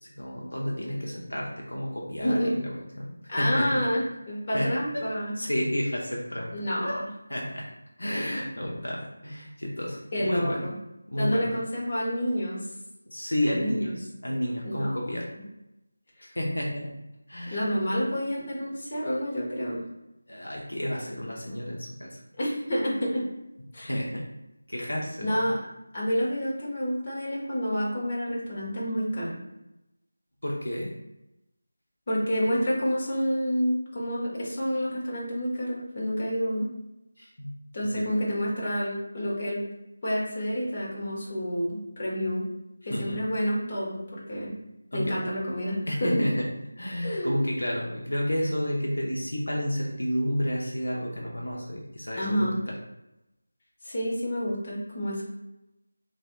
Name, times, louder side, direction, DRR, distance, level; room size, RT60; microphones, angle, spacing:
voice 1, 0.0-3.1 3.4-3.8 4.5-5.1 5.4-6.5 6.8-7.0 7.3-7.7 8.0-10.7 11.1-11.5 13.1-15.3 16.3-16.9 17.3-17.6 20.3-22.2 23.9-24.2 24.7-25.4 30.4-30.9 37.2-37.5 37.9-38.1 42.9-43.2 44.9-45.2 45.9-46.5 46.8-52.7, equal, 80° left, -3 dB, 0.9 m, -31 dB
voice 2, 2.2-2.5 3.3-5.4 6.5-7.1 10.1-10.7 11.2-12.6 13.5-13.9 14.6-14.9 15.3-15.4 16.2-16.3 17.5-19.8 21.5-21.6 22.4-23.2 23.7-24.0 25.2-25.6 25.9-29.3 32.1-36.7 37.7-39.6 40.0-42.4 42.8-44.5 44.9-46.2 47.0-47.3 52.1-52.6 53.8-55.2, equal, 30° left, -6 dB, 1.3 m, -29 dB
6.7 x 2.7 x 2.3 m, 0.93 s
figure-of-eight pair, 165°, 0 cm